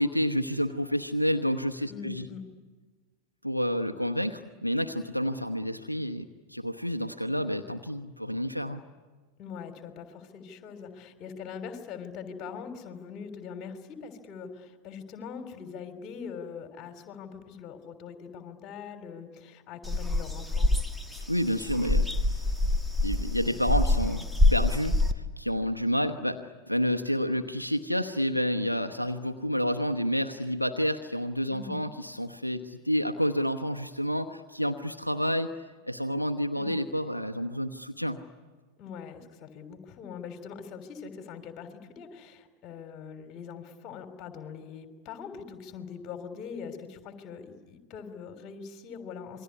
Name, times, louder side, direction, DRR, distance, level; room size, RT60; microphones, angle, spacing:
voice 1, 0.0-2.3 3.4-8.8 21.3-22.4 23.0-24.2 24.5-35.5 35.8-38.2, equal, 90° left, 6 dB, 1.0 m, -29 dB
voice 2, 1.9-2.4 9.4-20.7 31.5-31.9 36.5-36.7 38.8-49.4, left 6 dB, 35° left, 7 dB, 3.5 m, -42 dB
sound 1, 19.8-25.1, left 2 dB, ahead, 1.5 m, -25 dB
28.0 x 22.0 x 9.8 m, 1.4 s
figure-of-eight pair, 90°, 0 cm